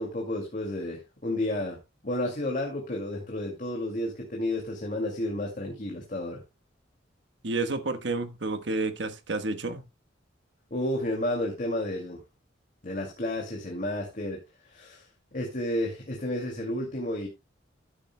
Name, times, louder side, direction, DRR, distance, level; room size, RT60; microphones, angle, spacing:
voice 1, 0.0-1.8 2.0-6.4 10.7-12.2 12.8-17.3, left 1 dB, 40° left, 2.3 m, -31 dB
voice 2, 7.4-9.8, right 3 dB, 65° right, 1.2 m, -30 dB
14.0 x 9.8 x 2.2 m
head